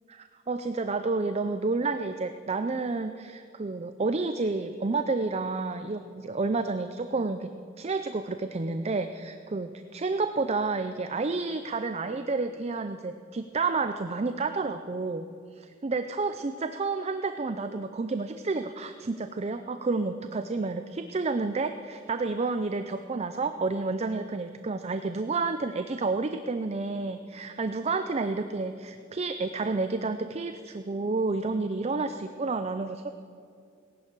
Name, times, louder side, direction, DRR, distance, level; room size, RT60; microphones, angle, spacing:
voice 1, 0.1-7.5 7.8-15.3 15.8-33.1, right 3 dB, 30° right, 9 dB, 0.5 m, -30 dB
18.0 x 11.0 x 6.7 m, 2.4 s
head